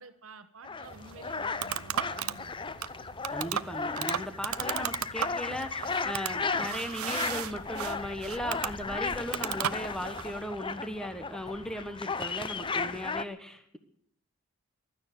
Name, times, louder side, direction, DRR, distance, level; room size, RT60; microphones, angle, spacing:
voice 1, 0.0-2.7, right 3 dB, 70° right, 8 dB, 1.2 m, -50 dB
sound 1, 0.6-13.2, left 4 dB, 25° left, 0.6 m, -35 dB
sound 2, 0.8-10.3, right 9 dB, 90° right, 0.6 m, -36 dB
voice 2, 3.3-13.8, equal, 5° left, 7 dB, 1.3 m, -37 dB
16.0 x 12.5 x 6.8 m, 0.65 s
head